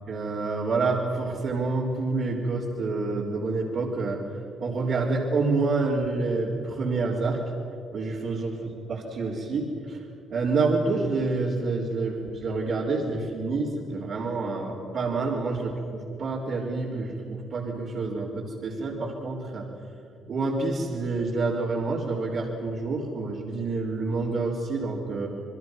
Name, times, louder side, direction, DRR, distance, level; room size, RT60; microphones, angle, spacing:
voice 1, 0.1-4.2 4.6-7.4 7.9-10.0 10.3-19.7 20.3-25.3, right 3 dB, 65° right, -7 dB, 4.0 m, -28 dB
28.0 x 22.0 x 6.2 m, 2.5 s
cardioid pair, 90°, 0 cm